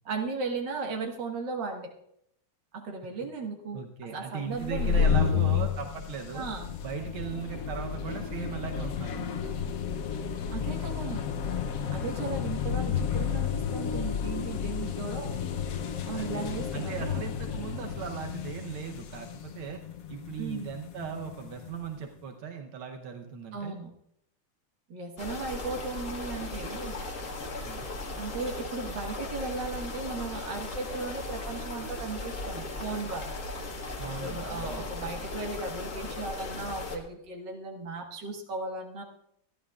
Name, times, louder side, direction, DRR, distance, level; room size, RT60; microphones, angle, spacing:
voice 1, 0.1-1.9 2.7-3.8 4.1-5.0 5.3-5.7 6.3-6.7 10.5-11.3 11.9-15.4 16.0-17.3 20.4-20.7 23.5-23.9 24.9-26.9 28.2-33.4 34.2-39.0, right 3 dB, 60° right, 2 dB, 2.1 m, -36 dB
voice 2, 3.7-6.5 6.8-9.5 11.9-12.3 16.1-19.8 20.1-23.7 27.6-27.8 34.0-35.0, right 7 dB, 85° right, 3 dB, 1.8 m, -38 dB
sound 1, 4.5-21.9, left 8 dB, 65° left, 0.9 m, -31 dB
sound 2, 25.2-37.0, left 2 dB, 40° left, 1.6 m, -37 dB
26.0 x 11.0 x 2.4 m, 0.77 s
omnidirectional pair, 2.3 m